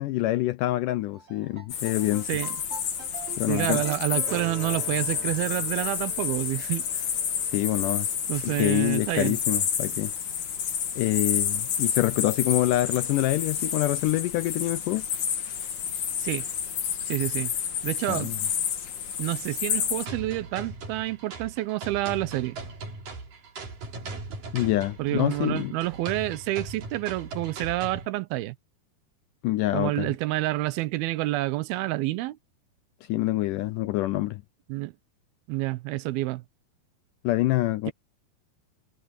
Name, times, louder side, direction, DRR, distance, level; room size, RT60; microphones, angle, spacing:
voice 1, 0.0-2.3 3.4-3.8 7.5-8.1 8.4-10.1 11.0-15.1 18.1-18.4 24.5-25.7 29.4-30.1 33.1-34.4 37.2-37.9, left 16 dB, 80° left, 1.9 m, -26 dB
sound 1, 1.1-9.3, right 3 dB, 35° right, 4.3 m, -44 dB
sound 2, 1.7-20.1, left 8 dB, 55° left, 3.3 m, -30 dB
voice 2, 3.5-7.1 8.3-9.4 16.2-16.5 17.1-17.5 17.8-18.3 19.2-22.6 25.0-28.6 29.7-32.4 34.7-34.9 35.5-36.4, right 17 dB, 85° right, 2.7 m, -28 dB
sound 3, 20.1-28.1, right 3 dB, 60° right, 6.1 m, -39 dB
omnidirectional pair, 4.3 m